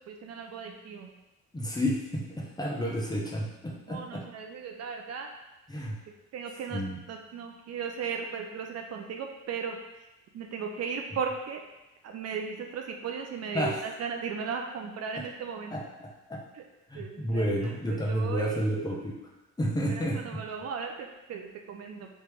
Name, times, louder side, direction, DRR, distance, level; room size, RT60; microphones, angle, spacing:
voice 1, 0.1-1.1 3.9-5.3 6.3-6.8 7.1-9.8 10.3-11.6 12.0-15.7 16.5-16.6 16.9-17.5 17.9-18.5 19.9-22.1, right 6 dB, 55° right, 3 dB, 0.5 m, -36 dB
voice 2, 1.5-4.2 5.7-6.0 6.7-7.0 13.5-13.8 15.2-15.3 15.7-16.4 16.9-19.2 19.6-20.4, equal, 15° left, -3 dB, 0.8 m, -31 dB
3.1 x 2.8 x 3.4 m, 0.99 s
cardioid pair, 90°, 30 cm